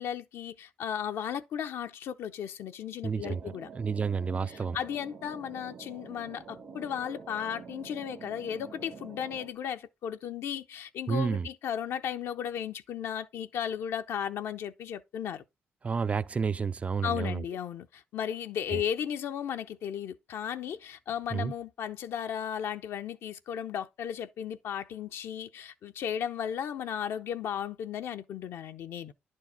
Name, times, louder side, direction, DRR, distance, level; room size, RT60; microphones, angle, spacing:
voice 1, 0.0-3.7 4.5-15.4 17.0-29.1, left 9 dB, 75° left, 0.7 m, -35 dB
voice 2, 3.0-3.4 3.7-4.8 11.1-11.5 15.8-17.4 18.7-18.8 21.3-21.5, right 5 dB, 30° right, 0.4 m, -30 dB
sound 1, 3.2-9.5, right 5 dB, 60° right, 1.3 m, -47 dB
10.5 x 4.7 x 4.2 m
cardioid pair, 75°, 4 cm